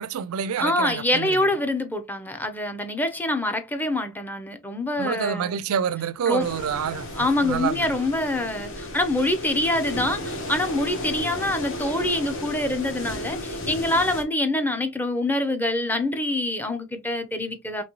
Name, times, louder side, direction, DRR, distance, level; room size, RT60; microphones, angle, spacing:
voice 1, 0.0-1.4 5.0-7.1 7.4-7.9, right 7 dB, 70° right, 0.4 m, -27 dB
voice 2, 0.6-5.6 6.3-6.5 7.2-17.8, left 1 dB, 10° left, 0.5 m, -25 dB
sound 1, 6.4-14.2, left 1 dB, 60° left, 1.3 m, -34 dB
3.8 x 3.1 x 3.0 m
head